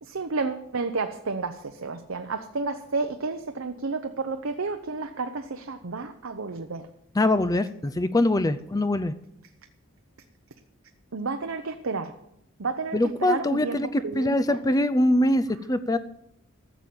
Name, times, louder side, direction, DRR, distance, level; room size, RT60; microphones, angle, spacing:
voice 1, 0.0-6.9 11.1-12.1 12.6-13.8 14.0-14.6, right 4 dB, 75° right, 6 dB, 0.8 m, -31 dB
voice 2, 7.2-9.1 12.9-16.0, left 1 dB, 15° left, 13 dB, 0.5 m, -23 dB
14.5 x 7.1 x 7.7 m, 0.78 s
head